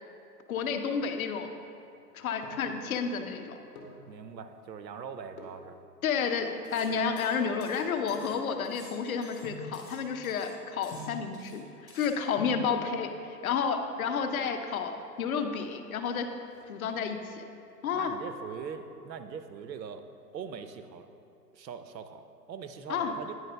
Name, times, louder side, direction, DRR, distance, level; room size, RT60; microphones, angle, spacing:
voice 1, 0.5-1.5 2.1-3.6 6.0-11.6 11.9-16.3 16.7-17.4 17.8-18.1 22.9-23.1, left 6 dB, 60° left, 6 dB, 0.7 m, -31 dB
sound 1, 2.0-2.8 3.5-4.1 5.3-5.7 6.4-8.8 9.4-9.8 10.9-11.3 12.1-12.2 12.4-12.7 13.8-14.4 14.7-14.8 15.0-15.1 15.5-15.9 16.2-17.3 17.7-18.1 18.5-19.6 19.9-20.0, left 2 dB, 40° left, 1.1 m, -47 dB
voice 2, 4.1-5.8 17.9-20.0 20.3-21.1 21.5-23.3, right 6 dB, 85° right, 9 dB, 0.7 m, -41 dB
sound 2, 6.6-6.9 7.2-8.4 8.6-10.0 10.2-10.5 10.8-11.6 11.9-12.1, left 2 dB, 5° right, 1.6 m, -52 dB
9.5 x 4.7 x 3.3 m, 2.7 s
hypercardioid pair, 145°, 49 cm